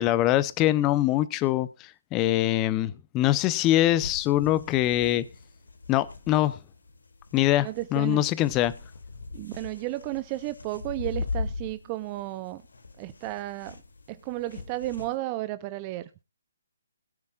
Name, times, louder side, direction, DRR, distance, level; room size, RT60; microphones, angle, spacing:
voice 1, 0.0-1.7 2.1-5.2 5.9-6.5 7.3-8.7, left 14 dB, 20° left, 17 dB, 0.8 m, -23 dB
sound 1, 4.0-15.2, left 4 dB, 80° left, 2.3 m, -40 dB
voice 2, 7.6-8.2 9.3-12.6 13.0-13.8 14.1-16.2, right 17 dB, 25° right, 14 dB, 0.6 m, -33 dB
21.5 x 9.5 x 2.5 m, 0.27 s
hypercardioid pair, 150°, 0 cm